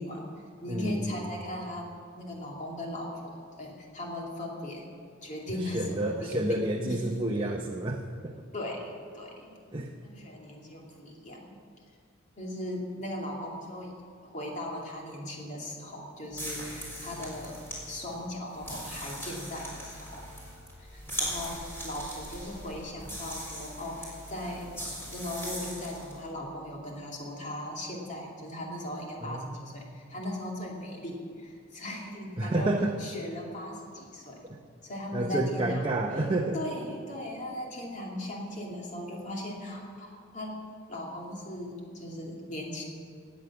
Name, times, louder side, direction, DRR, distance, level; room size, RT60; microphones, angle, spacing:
voice 1, 0.0-4.9 5.2-7.0 7.4-7.5 8.5-9.5 10.0-11.6 12.4-13.9 14.2-20.3 20.8-32.7 33.0-34.5 34.8-35.9 36.1-36.2 36.5-40.6 40.9-42.8, left 1 dB, 35° left, -2 dB, 2.5 m, -38 dB
voice 2, 0.7-1.3 5.6-8.4 9.7-9.9 29.2-29.8 32.4-33.0 35.1-36.6, right 1 dB, 25° right, 1 dB, 0.7 m, -30 dB
sound 1, 16.3-26.2, equal, 10° left, 3.8 m, -40 dB
18.0 x 8.3 x 6.1 m, 2.2 s
head